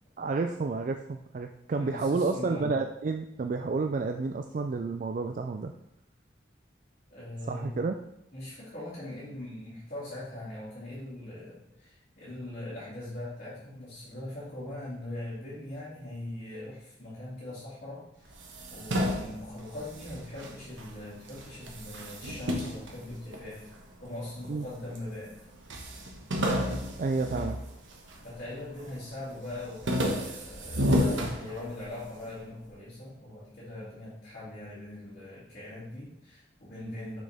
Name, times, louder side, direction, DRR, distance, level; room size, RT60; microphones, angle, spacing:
voice 1, 0.2-5.7 7.4-8.0 24.5-24.7 27.0-27.6, right 4 dB, 45° right, 6 dB, 0.3 m, -30 dB
voice 2, 1.7-2.7 7.1-7.8 8.3-18.3 18.7-23.7 24.0-25.3 27.1-27.4 28.2-37.2, left 1 dB, 45° left, -11 dB, 2.5 m, -41 dB
sound 1, 18.3-20.9 21.3-23.8 24.4-25.1 25.3-25.4 25.7-28.3 28.7-29.1 29.5-32.0, equal, 85° right, 1.2 m, -31 dB
6.4 x 6.3 x 3.4 m, 0.84 s
head